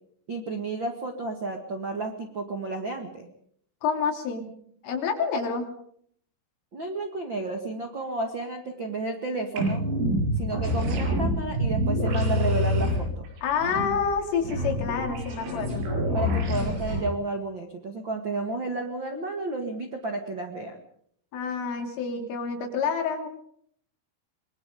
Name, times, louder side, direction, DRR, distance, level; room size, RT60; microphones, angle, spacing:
voice 1, 0.3-3.3 6.7-9.8 10.3-13.2 16.1-20.8, right 2 dB, 65° right, 5 dB, 1.1 m, -32 dB
voice 2, 3.8-4.5 4.8-5.7 13.4-15.9 21.3-23.3, left 6 dB, 75° left, 4 dB, 5.6 m, -28 dB
sound 1, 9.6-17.0, equal, 90° right, 10.0 m, -27 dB
24.5 x 23.0 x 5.2 m, 0.65 s
omnidirectional pair, 5.8 m